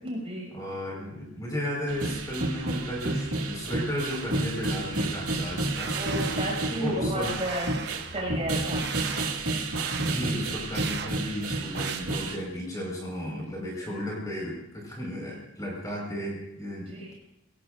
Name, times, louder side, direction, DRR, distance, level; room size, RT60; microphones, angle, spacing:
voice 1, 0.0-0.5 5.9-7.7 8.1-8.9 13.9-14.1 16.8-17.1, equal, 30° right, -2 dB, 6.1 m, -33 dB
voice 2, 0.5-6.0 6.7-7.4 10.0-17.1, equal, 15° left, -3 dB, 4.8 m, -34 dB
sound 1, 1.9-12.4, right 2 dB, 80° right, 2.2 m, -31 dB
sound 2, 5.7-6.8 7.2-8.2 8.7-9.4 9.7-10.2 10.7-11.1 11.7-12.0, right 6 dB, 50° right, 1.1 m, -37 dB
27.0 x 18.0 x 2.6 m, 0.87 s
head